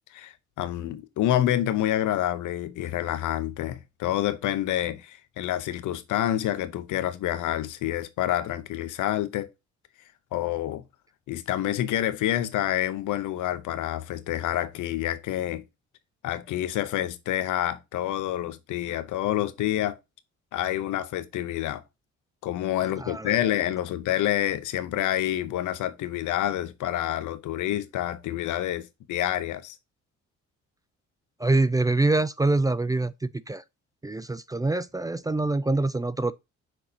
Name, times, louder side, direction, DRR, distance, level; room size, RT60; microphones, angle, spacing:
voice 1, 0.1-9.5 10.3-10.8 11.3-15.6 16.2-20.0 20.5-21.8 22.4-29.7, left 13 dB, 85° left, 0.8 m, -28 dB
voice 2, 23.0-23.4 31.4-33.1 33.5-33.6 34.0-36.3, right 2 dB, 10° right, 0.3 m, -25 dB
6.3 x 5.5 x 2.8 m
cardioid pair, 90°, 30 cm